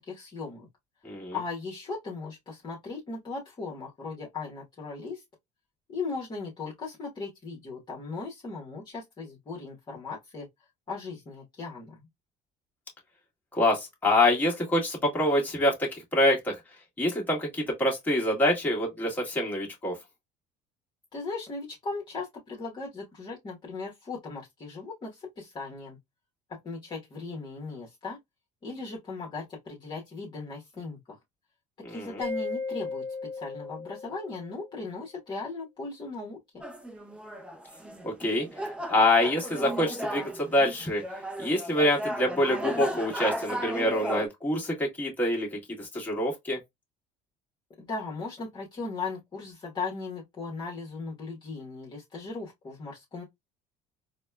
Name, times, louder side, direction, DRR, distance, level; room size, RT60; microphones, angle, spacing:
voice 1, 0.1-0.7 1.3-5.2 5.9-10.5 10.9-12.0 21.1-26.0 26.5-28.2 28.6-31.0 31.9-33.0 33.3-36.4 47.8-53.2, left 4 dB, 30° left, 1.2 m, -37 dB
voice 2, 1.0-1.4 13.5-16.6 17.0-20.0 31.8-32.2 38.0-38.5 38.9-41.0 41.4-46.6, left 1 dB, 10° left, 1.6 m, -26 dB
Mallet percussion, 32.2-34.7, left 4 dB, 40° right, 0.8 m, -36 dB
sound 1, 36.6-44.3, right 1 dB, 5° right, 0.6 m, -36 dB
4.1 x 2.2 x 2.3 m
cardioid pair, 135°, 16 cm